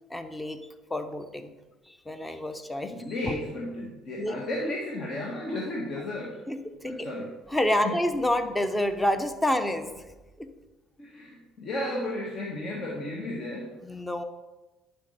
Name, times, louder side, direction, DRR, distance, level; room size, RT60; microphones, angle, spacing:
voice 1, 0.1-0.6 0.9-1.5 1.9-3.0 4.2-4.4 6.5-7.1 7.5-10.0 10.4-10.5 13.8-14.2, left 1 dB, 15° left, 9 dB, 0.9 m, -28 dB
voice 2, 2.9-6.4 6.8-7.3 7.8-8.0 11.0-13.8, left 1 dB, 50° left, -2 dB, 1.7 m, -33 dB
10.5 x 5.5 x 4.4 m, 1.1 s
hypercardioid pair, 65°, 0 cm